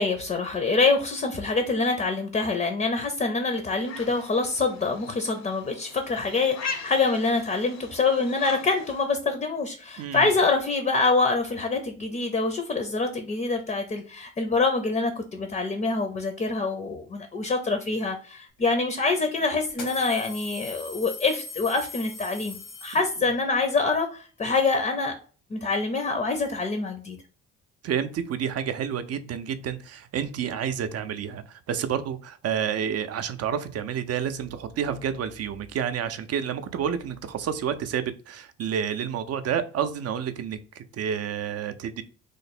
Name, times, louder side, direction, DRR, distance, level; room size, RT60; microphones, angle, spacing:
voice 1, 0.0-25.1 25.5-27.2, left 3 dB, 25° left, 7 dB, 0.5 m, -25 dB
sound 1, 3.8-9.1, left 5 dB, 60° left, 0.7 m, -40 dB
voice 2, 10.0-10.3 27.8-42.0, right 8 dB, 55° right, 11 dB, 0.5 m, -29 dB
sound 2, 18.6-18.7 19.7-23.5, left 3 dB, 85° left, 1.3 m, -41 dB
3.1 x 2.0 x 4.1 m, 0.40 s
cardioid pair, 90°, 30 cm